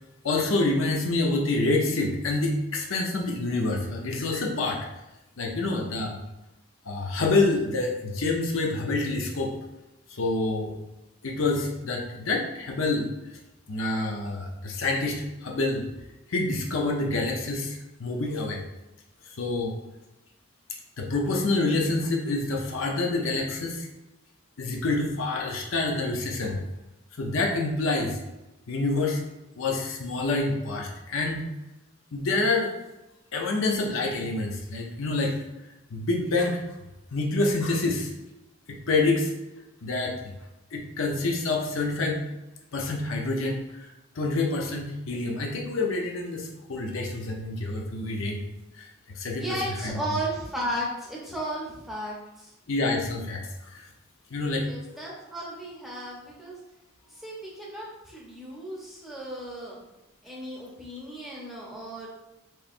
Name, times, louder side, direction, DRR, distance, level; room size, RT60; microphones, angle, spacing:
voice 1, 0.2-4.8 5.4-6.2 6.8-9.5 10.1-10.8 11.2-13.1 13.7-15.9 16.3-18.6 19.3-19.8 21.0-23.9 24.6-26.6 27.2-28.2 28.7-29.2 29.6-31.5 32.1-32.7 33.3-35.3 35.9-36.6 37.1-38.1 38.7-39.3 39.8-40.2 40.7-42.2 42.7-43.9 44.1-48.4 48.8-48.9 49.1-49.5 49.8-49.9 52.7-53.9 54.3-55.0, left 2 dB, 65° left, 0 dB, 0.6 m, -27 dB
voice 2, 49.4-52.5 54.5-56.6 57.1-59.8 60.2-62.1, right 1 dB, ahead, -4 dB, 0.8 m, -35 dB
4.4 x 3.3 x 2.5 m, 0.97 s
head